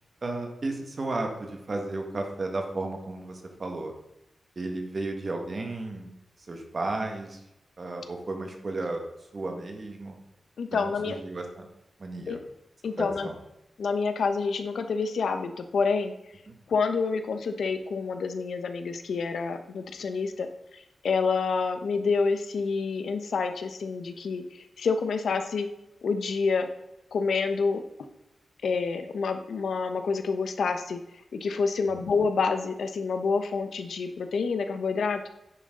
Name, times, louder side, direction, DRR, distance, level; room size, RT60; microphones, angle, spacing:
voice 1, 0.2-3.9 4.6-6.1 6.5-7.4 7.8-9.0 9.3-10.2 10.7-11.7 12.0-12.4 13.0-13.3 16.5-16.6 31.9-32.1, right 2 dB, 35° right, 3 dB, 1.7 m, -33 dB
voice 2, 10.6-11.2 12.3-12.4 12.8-13.3 13.8-16.1 16.7-20.5 20.7-25.7 26.0-26.7 27.1-27.8 28.6-31.0 31.3-35.3, left 4 dB, 80° left, 8 dB, 1.0 m, -28 dB
10.0 x 9.9 x 3.9 m, 0.87 s
wide cardioid pair, 175°, 0 cm